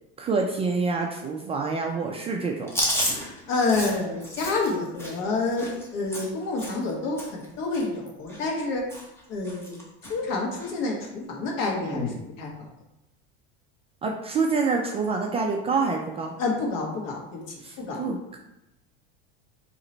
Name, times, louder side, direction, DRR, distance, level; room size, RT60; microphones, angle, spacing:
voice 1, 0.2-2.7 14.0-16.3 17.6-18.4, right 4 dB, 20° right, 1 dB, 0.3 m, -27 dB
Chewing mastication, 2.7-6.9 7.2-7.5 7.7-8.6 8.9-9.2 9.5-10.1 10.6-10.7 11.8-12.2, equal, 10° left, 1.0 m, -32 dB
voice 2, 3.5-8.8 9.3-9.8 10.1-12.5 16.4-17.4 17.8-18.0, left 3 dB, 55° left, 0 dB, 1.3 m, -28 dB
3.9 x 2.9 x 4.3 m, 0.92 s
supercardioid pair, 130°, 30 cm